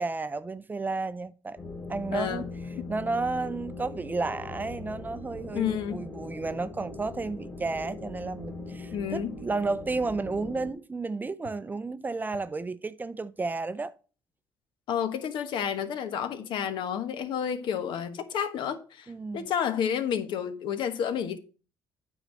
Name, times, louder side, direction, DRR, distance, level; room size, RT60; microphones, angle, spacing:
voice 1, 0.0-1.6 1.9-2.4 2.9-13.9 19.1-19.5, right 3 dB, 20° right, 0.5 m, -32 dB
sound 1, 1.6-10.7, left 2 dB, 30° left, 2.6 m, -41 dB
voice 2, 2.1-2.4 2.8-2.9 5.5-6.0 8.9-9.3 14.9-21.4, left 8 dB, 70° left, 1.2 m, -30 dB
9.2 x 4.0 x 6.2 m
cardioid pair, 95°, 8 cm